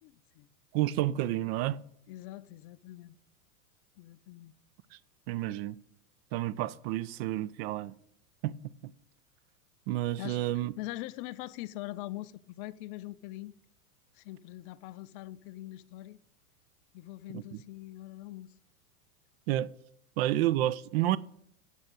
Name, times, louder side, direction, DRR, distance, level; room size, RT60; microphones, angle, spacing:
voice 1, 0.0-0.5 2.1-3.2 4.0-4.5 10.2-10.4 10.8-13.5 14.1-16.2 16.9-18.5, left 17 dB, 40° left, 0.4 m, -43 dB
voice 2, 0.7-1.8 5.3-5.8 6.3-7.9 8.4-8.5 9.9-10.7 17.3-17.4 19.5-19.7 20.2-21.2, right 14 dB, 45° right, 0.4 m, -30 dB
7.2 x 6.4 x 7.9 m
hypercardioid pair, 110°, 45 cm